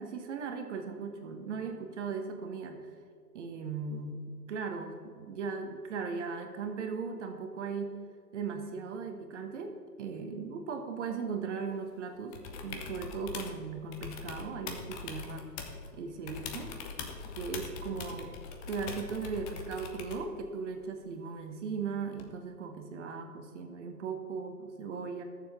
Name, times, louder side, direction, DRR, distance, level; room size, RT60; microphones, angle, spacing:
voice 1, 0.0-2.9 3.3-8.0 8.3-15.5 15.9-16.7 17.3-18.4 18.7-25.2, right 5 dB, 45° right, 5 dB, 1.3 m, -38 dB
sound 1, 12.3-13.6 13.9-15.9 16.3-20.3 22.2-22.3, left 5 dB, 20° left, 0.9 m, -42 dB
19.0 x 7.2 x 3.7 m, 2.3 s
figure-of-eight pair, 130°, 49 cm